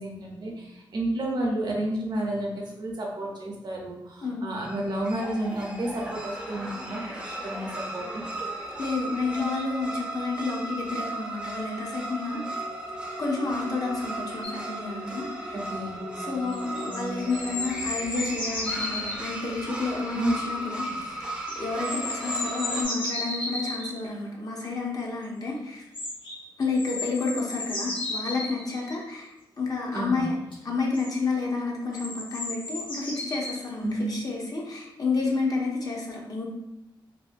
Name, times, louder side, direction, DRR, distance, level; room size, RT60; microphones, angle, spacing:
voice 1, 0.0-8.2 15.5-16.1 20.1-20.3 20.9-21.0 29.9-30.3 33.8-34.1, right 1 dB, 55° right, -1 dB, 0.6 m, -31 dB
sound 1, 4.6-22.8, right 1 dB, 10° right, 0.5 m, -36 dB
voice 2, 8.8-12.4 13.2-15.6 16.2-21.2 21.6-25.8 26.6-30.3 30.6-36.4, left 3 dB, 45° left, -2 dB, 0.7 m, -30 dB
sound 2, 14.4-14.6 16.5-19.2 21.5-23.9 25.9-26.4 26.7-28.9 30.5-30.6 30.9-31.1 31.9-33.6 34.1-34.2, left 2 dB, 70° left, 1.0 m, -33 dB
2.6 x 2.5 x 2.5 m, 0.91 s
wide cardioid pair, 95°, 9 cm